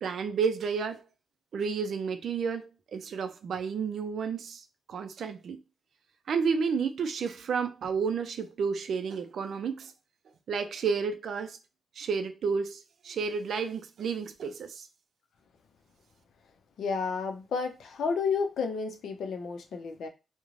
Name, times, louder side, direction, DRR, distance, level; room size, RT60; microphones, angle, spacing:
voice 1, 0.0-1.0 1.5-5.6 6.3-9.9 10.5-11.6 12.0-14.9, right 5 dB, 65° right, 0.4 m, -31 dB
voice 2, 16.8-20.1, left 5 dB, 75° left, 0.5 m, -31 dB
2.5 x 2.1 x 3.1 m
wide cardioid pair, 140°, 0 cm